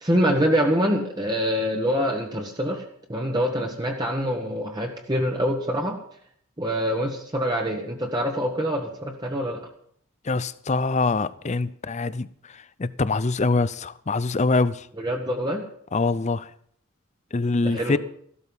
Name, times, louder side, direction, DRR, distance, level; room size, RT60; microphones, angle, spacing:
voice 1, 0.0-6.0 6.6-9.6 15.0-15.6 17.6-18.0, equal, 20° right, 1.3 m, -25 dB
voice 2, 10.3-12.3 12.8-14.9 15.9-16.5 17.3-18.0, left 3 dB, 30° left, 0.5 m, -24 dB
14.0 x 12.5 x 5.5 m
head